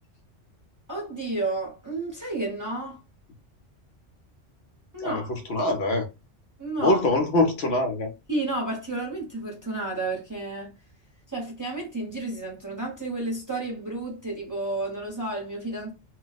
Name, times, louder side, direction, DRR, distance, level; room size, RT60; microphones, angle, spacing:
voice 1, 0.9-3.0 4.9-5.4 6.6-7.0 8.3-10.7 11.3-15.9, right 2 dB, 20° right, 0.7 m, -31 dB
voice 2, 5.0-6.1 6.8-8.1, left 2 dB, 65° left, 0.8 m, -24 dB
2.3 x 2.1 x 3.9 m
omnidirectional pair, 1.2 m